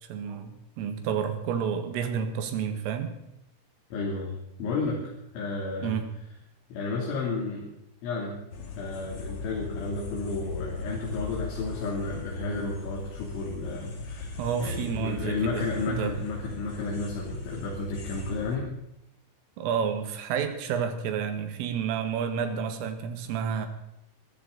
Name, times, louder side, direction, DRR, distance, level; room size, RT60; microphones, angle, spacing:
voice 1, 0.0-3.1 5.8-6.0 14.4-16.2 19.6-23.7, right 7 dB, 80° right, 7 dB, 4.2 m, -30 dB
voice 2, 3.9-4.3 4.6-6.0 6.7-7.7 8.0-8.4 8.8-18.7, left 3 dB, 70° left, -4 dB, 5.5 m, -32 dB
sound 1, 8.5-18.6, left 3 dB, 45° left, 2.0 m, -38 dB
24.0 x 13.0 x 4.1 m, 0.83 s
omnidirectional pair, 5.8 m